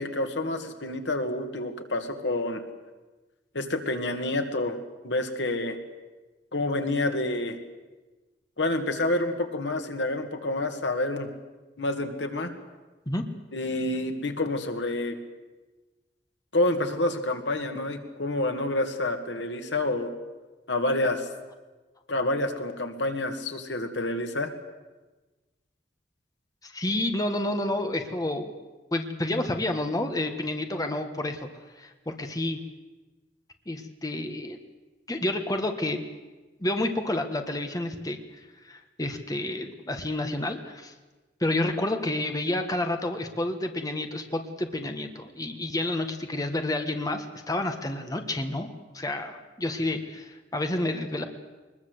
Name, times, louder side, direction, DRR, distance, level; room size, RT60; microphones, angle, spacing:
voice 1, 0.0-2.6 3.5-4.8 5.0-5.8 6.5-7.6 8.6-11.3 11.8-12.5 13.5-15.2 16.5-20.1 20.7-21.3 22.1-24.5, left 2 dB, 80° left, 6 dB, 2.2 m, -28 dB
voice 2, 26.6-28.5 28.9-31.5 31.8-32.6 33.7-34.6 35.1-36.0 36.6-38.2 38.6-40.9 41.4-51.3, left 1 dB, 20° left, 6 dB, 1.5 m, -29 dB
23.0 x 21.0 x 8.0 m, 1.2 s
head